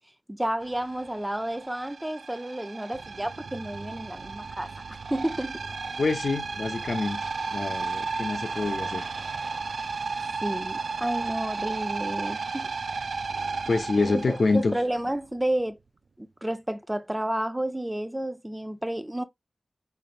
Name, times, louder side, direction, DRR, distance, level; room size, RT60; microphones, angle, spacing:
voice 1, 0.3-4.7 5.1-5.6 10.4-12.7 14.3-15.8 16.2-19.2, right 1 dB, 15° right, 0.5 m, -31 dB
sound 1, 0.6-15.2, right 4 dB, 85° right, 0.3 m, -34 dB
voice 2, 6.0-7.2 7.5-9.1 13.7-14.8, left 3 dB, 65° left, 0.7 m, -26 dB
4.1 x 3.3 x 2.4 m
wide cardioid pair, 60°, 0 cm